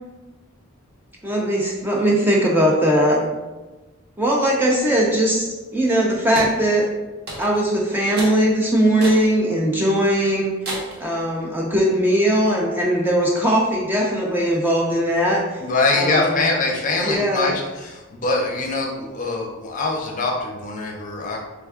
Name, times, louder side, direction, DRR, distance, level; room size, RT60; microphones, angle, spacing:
voice 1, 1.2-3.3 4.2-5.5 5.7-6.8 7.4-10.5 11.0-15.6 15.9-16.4 17.0-17.5, right 1 dB, 10° right, -3 dB, 0.3 m, -19 dB
sound 1, 6.3-6.6 7.3-7.7 8.2-8.4 9.0-9.3 9.8-9.9 10.6-11.0, right 1 dB, 50° right, 0.8 m, -31 dB
voice 2, 15.6-21.4, left 3 dB, 35° left, 0 dB, 0.5 m, -23 dB
3.3 x 2.2 x 3.5 m, 1.2 s
head